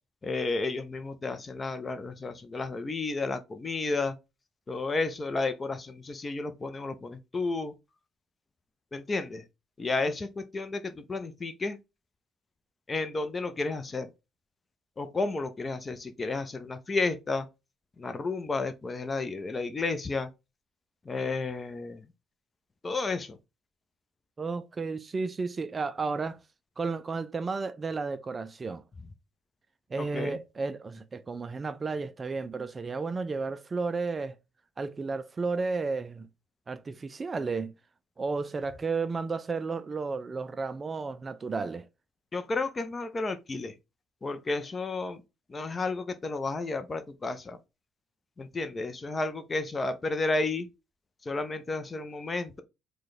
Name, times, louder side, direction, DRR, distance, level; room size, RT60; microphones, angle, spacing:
voice 1, 0.2-4.1 4.7-7.7 8.9-9.4 9.8-11.8 12.9-14.1 15.0-17.5 18.0-20.3 21.1-22.0 22.8-23.4 30.0-30.4 42.3-43.7 44.2-45.2 45.5-47.6 48.4-50.7 51.3-52.6, left 3 dB, 25° left, 0.6 m, -32 dB
voice 2, 24.4-26.4 26.8-28.8 29.9-34.4 34.8-36.3 36.7-37.7 38.2-41.9, right 4 dB, 30° right, 0.3 m, -33 dB
4.6 x 2.3 x 4.0 m
figure-of-eight pair, 50°, 0 cm